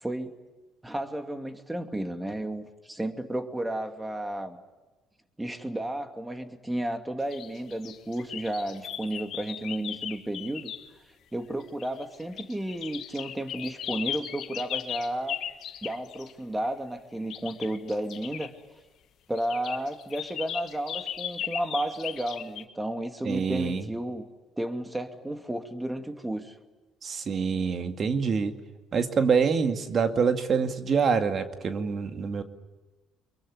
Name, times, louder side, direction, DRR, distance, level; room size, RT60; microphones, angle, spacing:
voice 1, 0.0-0.3 0.8-4.6 5.4-10.7 11.3-15.4 15.8-18.5 19.3-24.2 24.6-26.6, right 1 dB, 10° right, 6 dB, 2.6 m, -32 dB
sound 1, 7.3-10.9 11.6-16.3 17.3-18.5 19.4-22.6, left 10 dB, 60° left, 1.5 m, -37 dB
voice 2, 23.2-23.8 27.0-28.5 28.9-32.4, right 5 dB, 45° right, 7 dB, 2.2 m, -26 dB
24.0 x 23.0 x 9.9 m, 1.2 s
hypercardioid pair, 65°, 0 cm